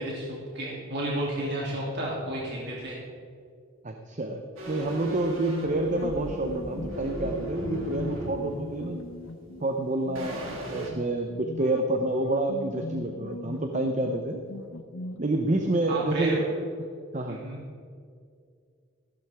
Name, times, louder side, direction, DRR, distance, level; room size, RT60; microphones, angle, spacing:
voice 1, 0.0-3.0 15.9-16.5 17.3-17.6, right 1 dB, 55° right, -5 dB, 2.9 m, -31 dB
voice 2, 3.8-9.0 9.6-14.4 15.2-16.4 17.1-17.4, right 2 dB, 35° right, 4 dB, 0.8 m, -28 dB
sound 1, 4.6-9.8 10.2-10.9, equal, 90° right, 2.8 m, -37 dB
sound 2, 5.5-15.2, left 2 dB, 80° left, 1.0 m, -39 dB
15.0 x 12.5 x 3.6 m, 2.2 s
head